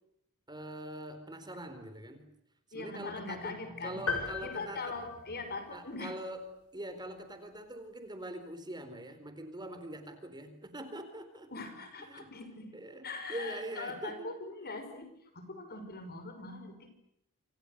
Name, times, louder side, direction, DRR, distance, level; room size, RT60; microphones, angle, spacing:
voice 1, 0.5-2.3 2.7-3.5 3.8-5.0 5.7-6.5 6.7-11.5 12.0-12.3 12.7-14.3, right 1 dB, 20° right, 9 dB, 4.1 m, -43 dB
voice 2, 2.7-6.2 11.5-12.7 13.0-16.9, left 3 dB, 45° left, 8 dB, 5.9 m, -42 dB
sound 1, 4.1-5.9, left 5 dB, 85° left, 6.7 m, -37 dB
28.0 x 28.0 x 6.7 m, 0.76 s
head